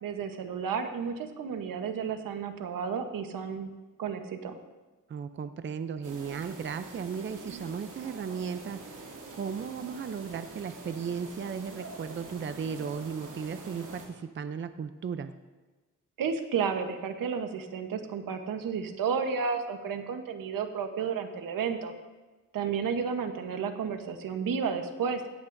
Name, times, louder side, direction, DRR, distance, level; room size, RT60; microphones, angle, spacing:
voice 1, 0.0-3.7 4.0-4.6 16.2-21.9 22.5-25.2, right 6 dB, 90° right, 7 dB, 1.1 m, -32 dB
voice 2, 5.1-15.3, right 6 dB, 35° right, 11 dB, 0.5 m, -36 dB
sound 1, 6.0-14.1, right 3 dB, 70° right, 2.7 m, -45 dB
17.0 x 14.0 x 2.6 m, 1.2 s
wide cardioid pair, 130°, 32 cm